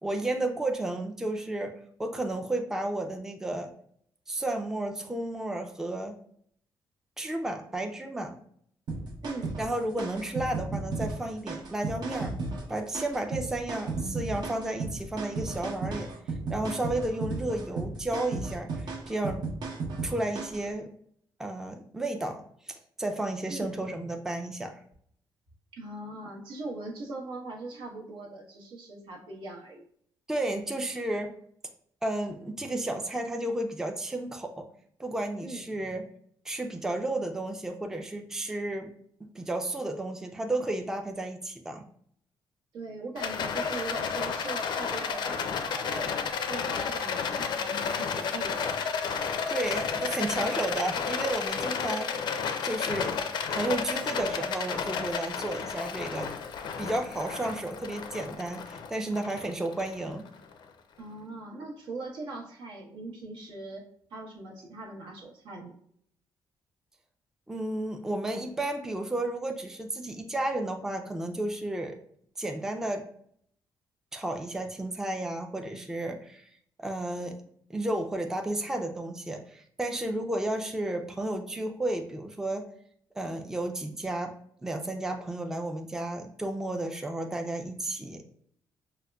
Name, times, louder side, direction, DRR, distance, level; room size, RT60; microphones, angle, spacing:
voice 1, 0.0-1.7 2.0-3.7 4.3-6.2 7.2-8.4 9.6-12.3 12.7-16.1 16.5-19.5 20.0-20.9 21.4-24.7 30.3-31.3 32.0-34.7 35.0-36.0 36.5-38.9 39.4-41.8 49.5-52.1 52.6-53.2 53.5-56.3 56.8-60.3 67.5-72.0 72.4-73.0 74.1-76.5 76.8-77.4 77.7-82.6 83.2-84.3 84.6-88.3, right 1 dB, 5° right, 4 dB, 0.3 m, -32 dB
sound 1, 8.9-20.7, right 3 dB, 60° right, 0.7 m, -35 dB
voice 2, 9.2-9.6 23.5-23.7 25.7-29.8 35.4-35.6 42.7-48.7 61.0-65.7, right 2 dB, 85° right, -1 dB, 0.9 m, -40 dB
Rattle, 43.2-60.5, left 6 dB, 65° left, 0.4 m, -32 dB
4.8 x 2.1 x 2.2 m, 0.65 s
cardioid pair, 120°, 8 cm